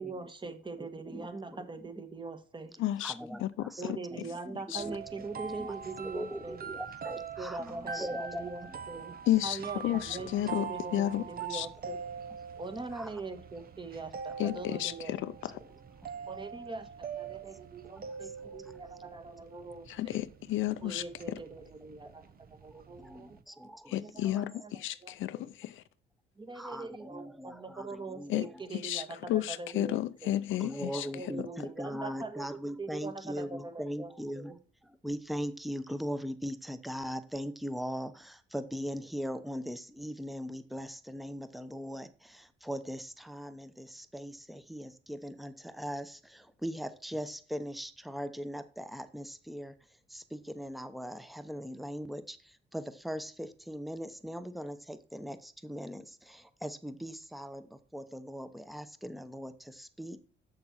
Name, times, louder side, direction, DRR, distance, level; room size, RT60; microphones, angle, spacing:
voice 1, 0.0-2.7 3.8-6.6 7.4-9.2 9.4-10.3 10.6-12.0 12.6-15.1 16.3-20.2 20.8-22.2 22.5-23.4 23.9-24.7 25.0-25.5 26.4-30.3 31.1-32.5 32.8-34.6, right 3 dB, 25° right, 1.5 m, -42 dB
voice 2, 0.8-1.7 3.0-5.7 6.0-8.4 12.9-13.1 18.0-18.7 22.0-22.2 23.0-23.9 26.5-28.3 30.6-34.5 35.0-49.7 50.1-60.2, equal, ahead, 0.9 m, -40 dB
voice 3, 2.8-4.0 4.7-4.8 9.3-11.7 14.4-15.6 19.9-21.4 23.9-25.8 28.3-31.1 31.4-31.5, left 13 dB, 80° left, 0.5 m, -32 dB
sound 1, 4.7-23.4, right 7 dB, 50° right, 1.0 m, -44 dB
7.5 x 6.6 x 4.3 m
cardioid pair, 90°, 20 cm